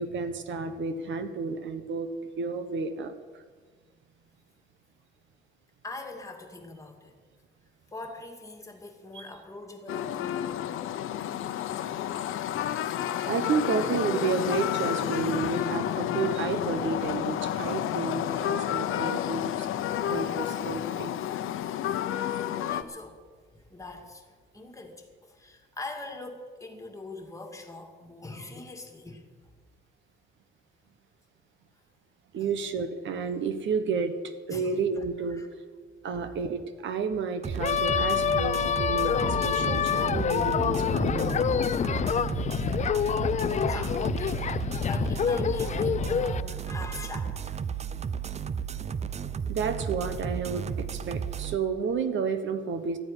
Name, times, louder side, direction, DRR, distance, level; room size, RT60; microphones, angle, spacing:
voice 1, 0.0-2.1 2.4-3.4 9.1-9.3 13.3-19.7 20.1-21.2 32.3-34.1 34.5-35.4 36.0-41.5 49.5-53.0, right 5 dB, 65° right, 9 dB, 1.3 m, -31 dB
voice 2, 5.8-7.2 7.9-10.7 12.8-13.0 22.5-23.2 23.5-29.5 32.4-32.5 34.5-35.5 36.1-36.4 42.5-43.1 43.6-47.6, left 2 dB, 15° left, 3 dB, 2.2 m, -43 dB
sound 1, 9.9-22.8, left 11 dB, 80° left, 0.9 m, -30 dB
sound 2, 37.4-51.6, right 7 dB, 30° right, 0.5 m, -33 dB
sound 3, 37.6-46.4, left 8 dB, 35° left, 0.5 m, -27 dB
13.5 x 9.5 x 9.9 m, 1.5 s
cardioid pair, 145°, 21 cm